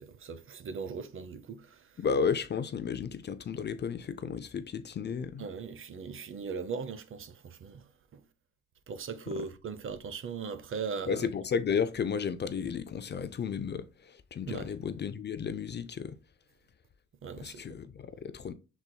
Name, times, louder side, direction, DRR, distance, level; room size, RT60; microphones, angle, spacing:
voice 1, 0.0-2.0 5.4-7.8 8.1-8.2 8.9-11.3 14.5-14.7 17.2-17.6, right 5 dB, 45° right, 0.7 m, -39 dB
voice 2, 2.0-5.5 9.3-9.5 11.1-16.2 17.4-18.5, left 6 dB, 35° left, 0.5 m, -33 dB
6.0 x 4.0 x 2.2 m
cardioid pair, 90°, 30 cm